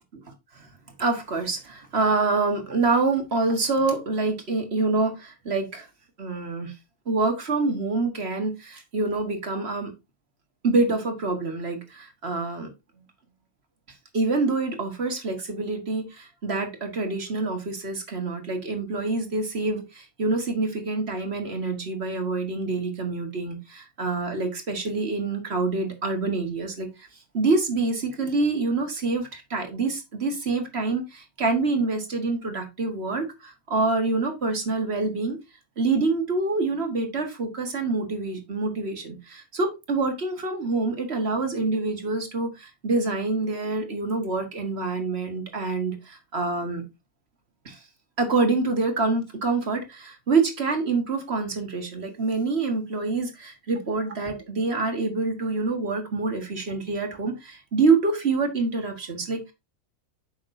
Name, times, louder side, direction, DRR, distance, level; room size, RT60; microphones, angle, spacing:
voice 1, 1.0-5.9 6.2-6.7 7.1-9.9 10.6-12.7 14.1-27.1 27.3-35.4 35.8-46.8 47.7-47.8 48.2-59.5, right 3 dB, 45° right, 1.9 m, -26 dB
8.4 x 6.1 x 2.6 m
omnidirectional pair, 1.5 m